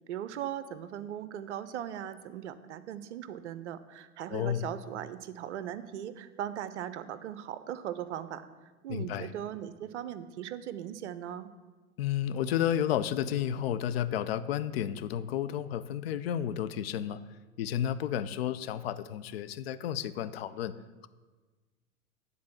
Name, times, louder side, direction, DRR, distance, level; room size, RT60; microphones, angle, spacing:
voice 1, 0.1-11.5, right 10 dB, 55° right, 13 dB, 0.6 m, -39 dB
voice 2, 4.3-4.7 8.9-9.3 12.0-17.2 17.6-20.7, left 10 dB, 45° left, 13 dB, 0.4 m, -31 dB
9.4 x 4.0 x 7.3 m, 1.3 s
figure-of-eight pair, 95°, 43 cm